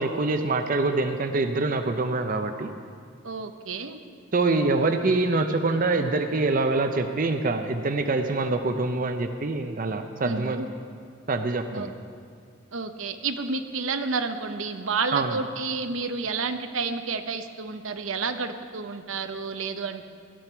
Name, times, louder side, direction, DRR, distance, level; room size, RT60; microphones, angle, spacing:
voice 1, 0.0-2.7 4.3-10.6 11.3-11.9 15.1-15.4, right 3 dB, 45° right, 7 dB, 0.6 m, -25 dB
voice 2, 3.2-4.0 10.2-10.7 11.7-11.9 12.7-20.1, right 4 dB, 85° right, 7 dB, 0.8 m, -30 dB
17.5 x 11.5 x 4.5 m, 2.2 s
head